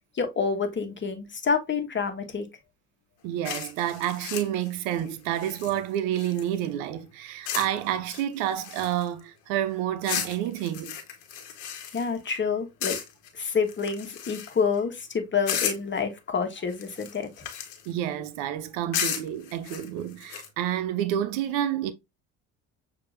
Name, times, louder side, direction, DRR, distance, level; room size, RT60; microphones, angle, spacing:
voice 1, 0.1-2.5 11.9-13.0 13.3-17.5, left 5 dB, 30° left, 1.5 m, -28 dB
voice 2, 3.2-11.0 17.9-21.9, right 11 dB, 75° right, 0.8 m, -29 dB
sound 1, 3.5-6.7 7.5-7.8 8.1-9.2 10.0-12.4 12.8-13.3 13.7-14.8 15.5-16.0 16.7-17.9 18.9-20.5, left 8 dB, 70° left, 1.3 m, -34 dB
6.6 x 3.0 x 2.6 m
hypercardioid pair, 75°, 38 cm